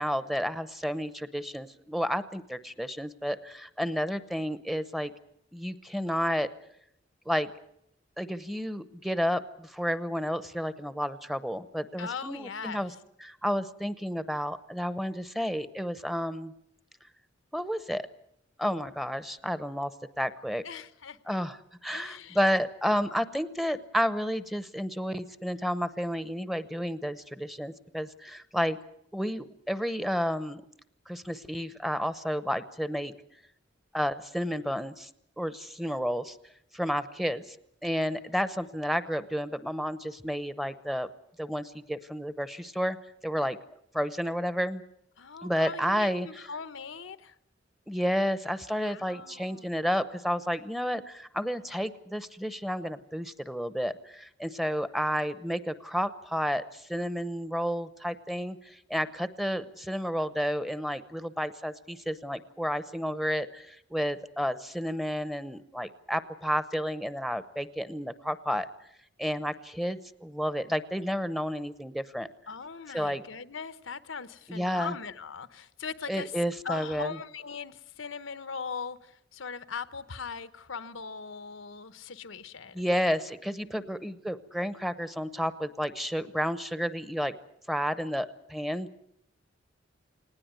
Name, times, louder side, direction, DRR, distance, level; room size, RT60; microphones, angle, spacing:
voice 1, 0.0-5.1 5.5-6.5 7.3-7.5 8.2-12.9 13.2-16.5 17.5-18.1 18.6-19.9 20.2-20.6 21.3-21.6 21.8-28.8 29.1-30.6 31.1-33.1 33.9-35.1 35.4-36.4 36.7-37.6 37.8-41.1 41.4-43.0 43.2-43.6 43.9-44.8 45.4-46.3 47.9-68.7 69.2-72.3 72.9-73.2 74.5-74.9 76.1-77.2 82.7-87.3 87.7-89.0, equal, ahead, 0.8 m, -31 dB
voice 2, 12.0-12.9 20.6-21.2 21.9-22.4 45.2-47.3 48.8-49.7 72.5-76.3 76.6-82.8 83.6-83.8, left 5 dB, 90° left, 1.0 m, -40 dB
19.5 x 18.0 x 9.4 m
head